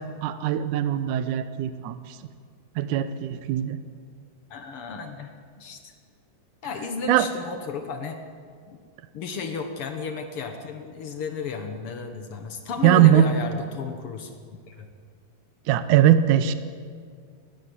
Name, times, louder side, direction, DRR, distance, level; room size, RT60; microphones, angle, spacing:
voice 1, 0.2-2.1 2.8-3.8 7.1-7.3 12.8-13.2 15.7-16.5, right 11 dB, 90° right, 11 dB, 1.7 m, -20 dB
voice 2, 4.5-5.3 5.6-5.9 6.6-8.2 8.7-8.8 9.1-14.3 14.7-14.9, left 5 dB, 80° left, 6 dB, 1.2 m, -33 dB
19.5 x 15.5 x 9.7 m, 2.1 s
omnidirectional pair, 4.5 m